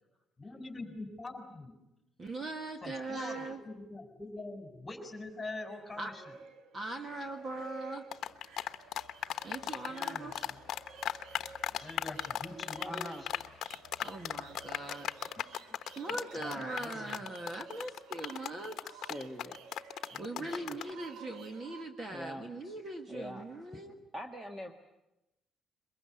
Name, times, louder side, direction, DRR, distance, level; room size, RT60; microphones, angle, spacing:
voice 1, 0.4-1.8 2.8-6.4 9.8-10.6 11.8-13.3 16.1-17.1 20.1-20.8, left 2 dB, 15° left, 7 dB, 4.2 m, -44 dB
voice 2, 2.2-3.6 6.0-6.1 6.7-8.0 9.4-10.3 14.0-15.1 16.0-19.1 20.2-23.9, right 2 dB, 30° right, 6 dB, 1.7 m, -40 dB
sound 1, 4.9-21.8, right 5 dB, 85° right, 1.5 m, -53 dB
sound 2, 8.1-20.9, left 11 dB, 60° left, 1.0 m, -37 dB
voice 3, 12.9-13.2 19.1-19.6 22.1-22.7 23.1-23.4 24.1-24.7, equal, 15° right, 4 dB, 1.6 m, -43 dB
23.0 x 21.5 x 9.9 m, 0.92 s
cardioid pair, 150°, 0 cm